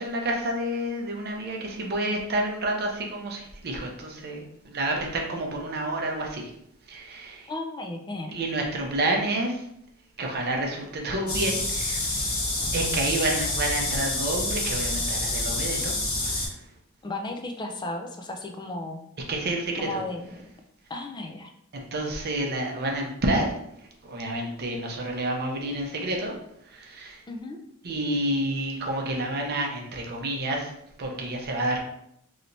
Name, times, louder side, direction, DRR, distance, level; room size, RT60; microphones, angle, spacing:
voice 1, 0.0-6.5 6.9-7.5 8.3-9.6 10.2-12.4 12.7-15.9 16.2-16.5 19.3-19.9 21.7-23.5 24.0-26.3 26.7-27.2 27.8-30.7 31.0-31.8, right 1 dB, 50° right, 1 dB, 0.7 m, -29 dB
voice 2, 7.5-8.4 17.0-19.0 19.8-20.5 20.9-21.5 27.3-27.6, left 2 dB, 20° left, 4 dB, 0.4 m, -34 dB
sound 1, 11.3-16.5, left 2 dB, 70° left, 1.1 m, -28 dB
3.2 x 2.8 x 2.6 m, 0.75 s
head